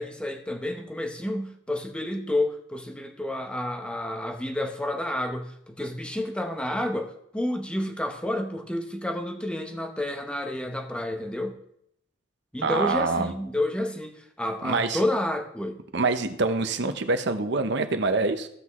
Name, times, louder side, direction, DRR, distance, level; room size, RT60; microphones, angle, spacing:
voice 1, 0.0-11.5 12.5-15.8, left 1 dB, 5° left, 4 dB, 0.9 m, -30 dB
voice 2, 12.6-13.3 14.6-15.0 15.9-18.5, right 3 dB, 65° right, 8 dB, 0.8 m, -25 dB
15.5 x 6.0 x 3.1 m, 0.72 s
head